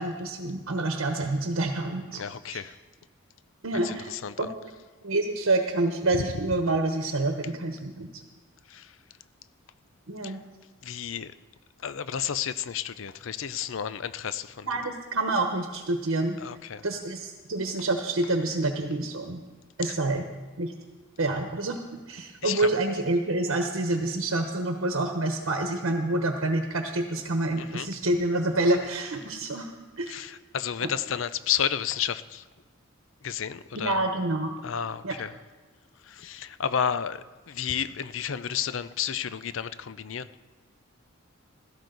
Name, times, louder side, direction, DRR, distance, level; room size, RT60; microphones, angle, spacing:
voice 1, 0.0-2.2 2.5-2.6 3.6-4.1 4.4-4.5 5.0-8.1 10.1-10.4 14.6-16.4 16.8-19.4 19.8-20.2 20.6-20.7 21.2-21.8 22.1-29.7 30.0-30.2 30.8-30.9 33.7-34.6 35.0-35.1, right 2 dB, 80° right, 4 dB, 1.1 m, -27 dB
voice 2, 2.1-2.7 3.8-4.5 8.7-9.0 10.2-10.4 10.8-11.3 11.8-14.7 16.4-16.8 19.8-20.0 22.4-22.7 27.6-27.9 30.1-32.4 33.2-34.0 34.6-35.4 36.0-40.3, left 8 dB, 65° left, 14 dB, 0.5 m, -32 dB
16.0 x 13.5 x 4.0 m, 1.3 s
head